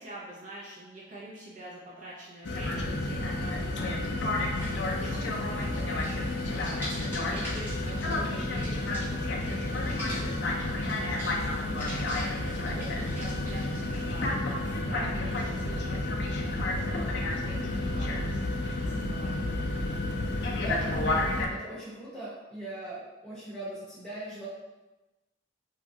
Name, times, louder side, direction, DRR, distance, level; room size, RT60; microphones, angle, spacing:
voice 1, 0.0-14.3 14.6-19.3, right 1 dB, 40° right, -6 dB, 0.5 m, -46 dB
sound 1, 2.4-21.5, left 2 dB, 65° left, 0.4 m, -30 dB
sound 2, 4.6-14.3, left 1 dB, 10° right, 1.1 m, -44 dB
voice 2, 20.6-24.5, right 1 dB, 5° left, -9 dB, 0.8 m, -40 dB
3.0 x 2.4 x 2.6 m, 1.1 s
head